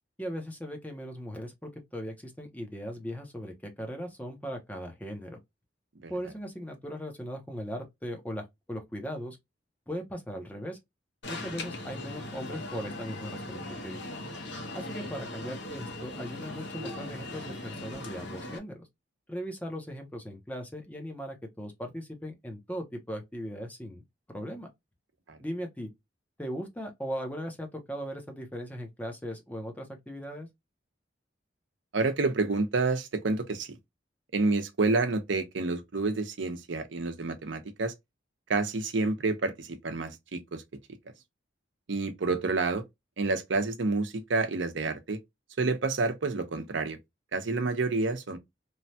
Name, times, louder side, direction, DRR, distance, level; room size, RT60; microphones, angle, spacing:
voice 1, 0.2-5.4 6.1-9.4 9.9-10.8 11.3-14.1 14.7-18.9 19.3-24.0 24.3-24.7 25.4-25.9 26.4-30.5, equal, 10° left, 0.7 m, -38 dB
Alarm, 11.2-18.6, left 2 dB, 65° left, 0.9 m, -39 dB
voice 2, 31.9-33.8 34.3-37.9 38.5-40.6 41.9-42.8 43.2-45.2 45.6-47.0 47.3-48.4, right 3 dB, 85° right, 0.7 m, -29 dB
3.1 x 2.2 x 2.7 m
head